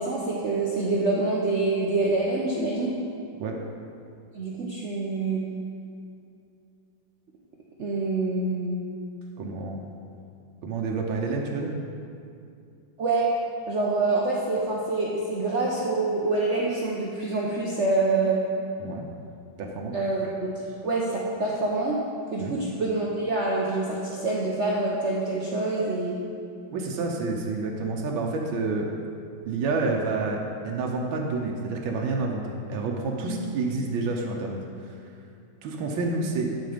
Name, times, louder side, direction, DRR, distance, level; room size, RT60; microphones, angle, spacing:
voice 1, 0.0-2.9 4.3-5.4 7.8-8.8 13.0-13.3 13.7-18.4 19.9-20.5 20.8-22.0 22.3-26.2 33.2-33.4, right 3 dB, 55° right, -3 dB, 0.8 m, -26 dB
voice 2, 9.4-9.8 10.6-11.7 18.8-19.1 19.6-19.9 22.4-22.6 26.7-28.9 29.5-35.0 35.6-36.5, right 3 dB, 90° right, 0 dB, 1.6 m, -29 dB
12.0 x 4.3 x 5.0 m, 2.4 s
omnidirectional pair, 2.1 m